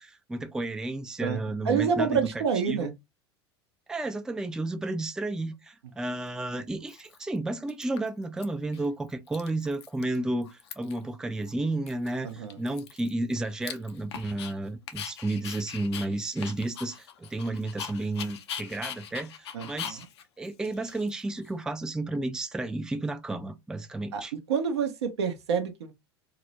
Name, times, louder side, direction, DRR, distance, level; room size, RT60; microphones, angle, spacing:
voice 1, 0.0-2.3 2.7-2.9 3.9-20.0 20.4-24.3, right 2 dB, 5° right, 0.3 m, -32 dB
voice 2, 1.2-2.9 12.2-12.6 19.5-20.1 24.1-25.9, right 6 dB, 75° right, 0.6 m, -28 dB
Dog, 6.1-6.2 6.9-7.4 7.7-8.4 8.7-8.9 9.1-10.2 10.4-11.1 11.4-11.5 11.9-14.5 14.9-21.5, left 9 dB, 75° left, 0.4 m, -41 dB
2.3 x 2.0 x 2.8 m
hypercardioid pair, 80°, 14 cm